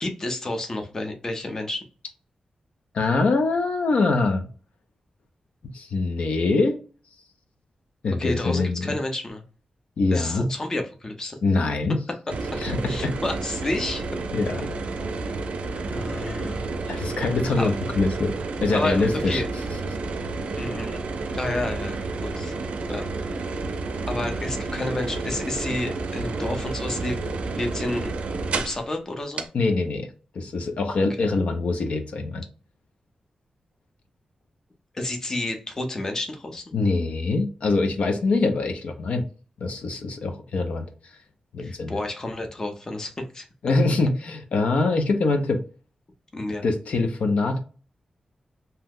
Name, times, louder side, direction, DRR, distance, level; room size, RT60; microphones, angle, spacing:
voice 1, 0.0-1.8 8.2-9.4 10.1-11.4 12.9-14.1 15.8-16.7 17.6-17.7 18.7-19.5 20.6-21.0 21.3-22.5 22.9-23.1 24.1-27.2 27.5-28.1 28.6-29.5 31.2-31.3 34.9-36.7 38.1-38.2 41.6-43.5 46.3-46.6, left 2 dB, 25° left, 4 dB, 0.6 m, -30 dB
voice 2, 2.9-4.5 5.6-6.8 8.0-8.9 10.0-10.5 11.4-12.0 12.6-13.1 14.3-14.7 16.2-16.4 16.9-18.3 18.6-19.4 29.5-30.1 30.3-32.4 36.7-39.2 39.6-41.1 41.5-42.0 43.6-45.6 46.6-47.6, left 3 dB, 75° left, 6 dB, 0.5 m, -24 dB
sound 1, 12.3-28.8 29.4-29.5, right 3 dB, 70° right, 0.4 m, -30 dB
2.8 x 2.1 x 3.5 m, 0.36 s
wide cardioid pair, 160°, 2 cm